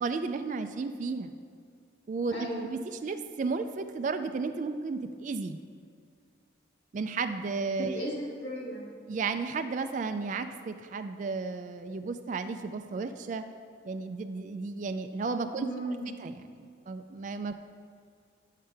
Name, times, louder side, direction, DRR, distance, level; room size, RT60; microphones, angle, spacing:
voice 1, 0.0-1.3 2.1-2.4 2.6-5.6 6.9-8.1 9.1-13.5 13.8-15.7 16.2-17.5, right 4 dB, 40° right, 8 dB, 0.3 m, -33 dB
voice 2, 2.3-2.7 7.8-8.9 15.6-16.1, right 1 dB, 70° left, -3 dB, 2.0 m, -35 dB
10.5 x 6.5 x 3.4 m, 2.2 s
head